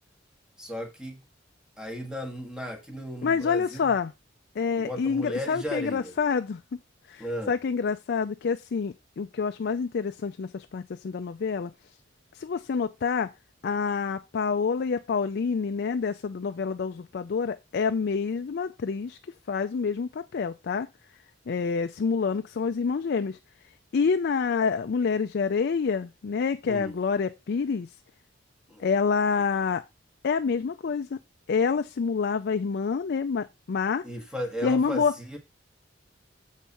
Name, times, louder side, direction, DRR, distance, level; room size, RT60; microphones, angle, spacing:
voice 1, 0.6-1.2 1.8-3.9 4.8-6.1 7.2-7.5 26.6-27.0 28.7-28.8 34.0-35.4, left 1 dB, 5° right, 1.7 m, -35 dB
voice 2, 3.2-4.1 4.6-6.6 7.1-11.7 12.3-13.3 13.6-19.2 19.5-20.9 21.5-23.4 23.9-27.9 28.8-29.8 30.2-31.2 31.5-34.0 34.6-35.1, left 5 dB, 55° left, 0.4 m, -27 dB
7.3 x 5.4 x 4.3 m
head